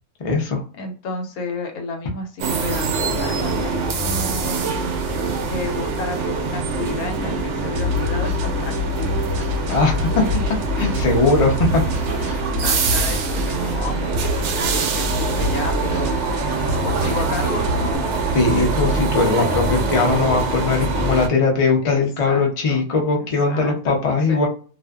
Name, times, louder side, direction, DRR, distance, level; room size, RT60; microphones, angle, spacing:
voice 1, 0.2-0.6 9.7-10.1 10.8-11.5 12.1-12.4 18.3-24.5, left 4 dB, 45° left, 1 dB, 0.4 m, -20 dB
voice 2, 0.7-4.7 5.5-9.2 12.6-18.0 18.6-18.7 21.8-22.9 23.2-24.4, left 3 dB, 85° left, 4 dB, 1.2 m, -32 dB
sound 1, 2.4-21.3, right 4 dB, 65° right, 0.8 m, -24 dB
sound 2, 6.5-19.3, equal, 25° right, 0.7 m, -34 dB
sound 3, 7.8-18.0, left 1 dB, 85° right, 1.1 m, -27 dB
2.5 x 2.4 x 2.3 m, 0.39 s
omnidirectional pair, 1.5 m